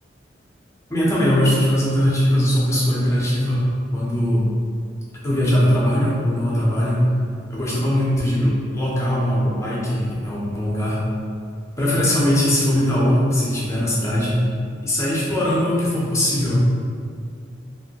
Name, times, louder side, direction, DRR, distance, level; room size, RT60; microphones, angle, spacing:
voice 1, 0.9-4.5 5.2-7.1 7.5-11.0 11.8-14.4 14.8-16.6, equal, 15° left, -6 dB, 0.6 m, -20 dB
2.9 x 2.7 x 2.8 m, 2.3 s
head